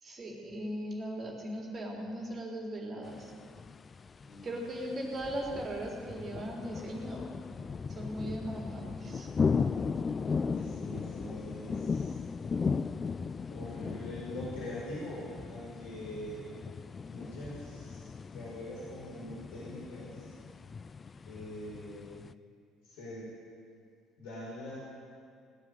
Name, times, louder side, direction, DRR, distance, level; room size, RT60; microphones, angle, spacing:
voice 1, 0.0-3.3 4.4-7.2 7.9-9.3, right 1 dB, 40° right, -1 dB, 3.8 m, -38 dB
sound 1, 3.0-22.3, left 5 dB, 35° left, 0.4 m, -37 dB
voice 2, 4.3-4.6 4.9-5.0 10.5-12.2 13.5-16.6 17.0-18.0 18.3-20.4 21.3-22.3 22.8-23.3 24.2-24.8, left 1 dB, 70° left, -7 dB, 5.2 m, -43 dB
18.5 x 7.7 x 9.3 m, 2.2 s
hypercardioid pair, 60°, 0 cm